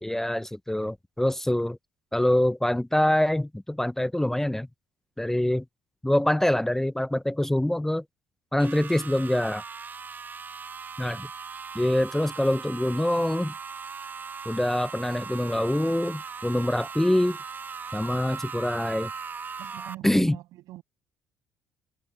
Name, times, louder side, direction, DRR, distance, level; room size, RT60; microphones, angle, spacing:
voice 1, 0.0-1.8 2.1-4.7 5.2-5.6 6.0-8.0 8.5-9.6 11.0-11.3 11.7-13.5 14.5-17.4 17.9-19.1 20.0-20.4, left 1 dB, 5° left, 0.5 m, -25 dB
sound 1, 8.6-19.9, right 5 dB, 30° right, 0.6 m, -39 dB
voice 2, 19.6-20.8, right 16 dB, 75° right, 6.5 m, -42 dB
supercardioid pair, 80°, 6 cm